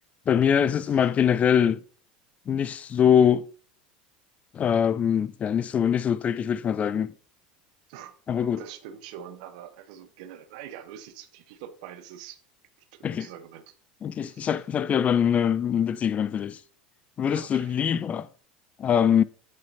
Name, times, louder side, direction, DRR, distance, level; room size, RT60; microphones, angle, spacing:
voice 1, 0.3-1.8 2.5-3.4 4.5-7.1 8.3-8.6 13.0-13.3 14.0-16.6 17.2-18.3 18.8-19.2, left 8 dB, 35° left, 0.4 m, -23 dB
voice 2, 7.9-12.4 12.8-13.7 14.1-14.7 17.4-18.0, right 10 dB, 65° right, 0.9 m, -45 dB
9.1 x 5.6 x 2.7 m
hypercardioid pair, 85°, 4 cm